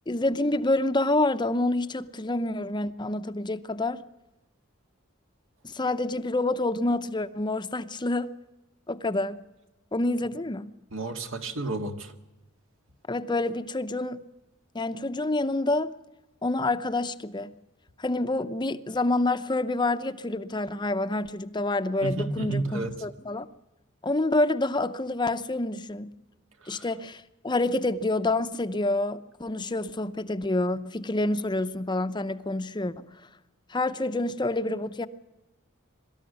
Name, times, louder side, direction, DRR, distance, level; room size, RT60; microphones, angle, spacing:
voice 1, 0.1-4.0 5.6-8.3 8.9-9.4 9.9-10.7 13.1-14.2 14.7-15.9 16.4-17.5 18.0-23.5 24.0-26.1 26.7-33.0 33.7-35.1, left 2 dB, 20° left, 0.7 m, -27 dB
voice 2, 10.9-12.1 22.0-23.1 26.6-26.9, right 2 dB, 70° right, 1.9 m, -32 dB
23.5 x 13.0 x 9.4 m
head